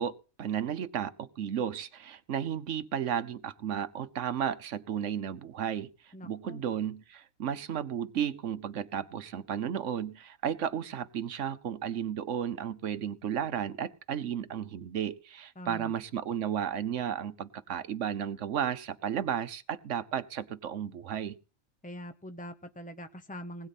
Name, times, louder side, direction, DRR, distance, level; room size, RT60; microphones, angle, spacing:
voice 1, 0.0-21.4, right 9 dB, 65° right, 13 dB, 1.1 m, -33 dB
voice 2, 6.1-6.6 15.6-15.9 21.8-23.7, equal, 10° left, 8 dB, 0.4 m, -43 dB
20.0 x 9.0 x 4.2 m, 0.36 s
omnidirectional pair, 1.4 m